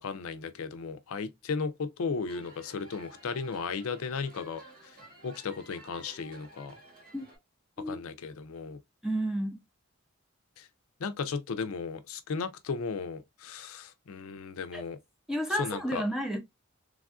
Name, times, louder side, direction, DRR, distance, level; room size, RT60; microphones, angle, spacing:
voice 1, 0.0-4.6 5.2-6.7 7.9-8.8 10.6-10.7 11.0-15.0 15.5-16.0, left 5 dB, 80° left, 0.4 m, -35 dB
sound 1, 2.2-7.4, right 1 dB, 45° right, 1.7 m, -53 dB
voice 2, 9.0-9.6 14.7-14.8 15.3-16.4, equal, ahead, 0.5 m, -31 dB
3.3 x 2.4 x 2.3 m
head